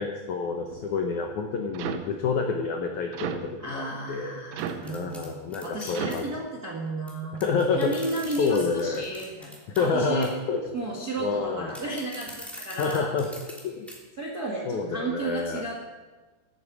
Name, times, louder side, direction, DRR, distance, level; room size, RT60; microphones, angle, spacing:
voice 1, 0.0-4.4 4.9-6.2 7.4-7.9 8.4-9.1 9.8-10.6 11.2-11.7 12.8-13.3 13.6-13.9 14.7-15.6, left 5 dB, 85° left, 3 dB, 1.7 m, -28 dB
sound 1, 0.7-1.1 1.7-2.2 3.1-3.6 4.5-5.0 5.9-6.3 7.4-7.6 8.2-8.4 9.0-9.2 9.8-10.0 10.6-10.8 11.4-11.6 12.2-12.4 13.0-13.2, right 8 dB, 75° right, 2.7 m, -37 dB
voice 2, 3.6-5.2 5.6-7.4 7.8-10.3 10.7-13.1 14.2-15.7, right 2 dB, 45° right, -2 dB, 1.1 m, -33 dB
sound 2, 4.6-6.2 7.1-7.2 7.4-9.9 10.2-10.5 11.7-13.6 13.9-14.0 14.4-14.5, equal, ahead, 1.9 m, -43 dB
16.5 x 12.0 x 4.8 m, 1.3 s
omnidirectional pair, 5.0 m